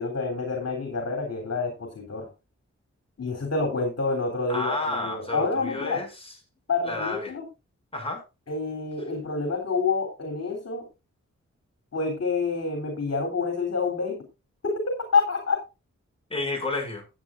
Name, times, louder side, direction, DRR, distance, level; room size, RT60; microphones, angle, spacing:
voice 1, 0.0-2.3 3.2-6.0 6.7-7.5 8.5-10.9 11.9-14.2 14.6-15.6, left 4 dB, 55° left, 2 dB, 3.3 m, -28 dB
voice 2, 4.5-6.3 6.9-7.3 7.9-8.2 16.3-17.0, left 2 dB, 20° left, 1 dB, 6.4 m, -31 dB
15.0 x 9.6 x 2.5 m, 0.27 s
cardioid pair, 70°, 29 cm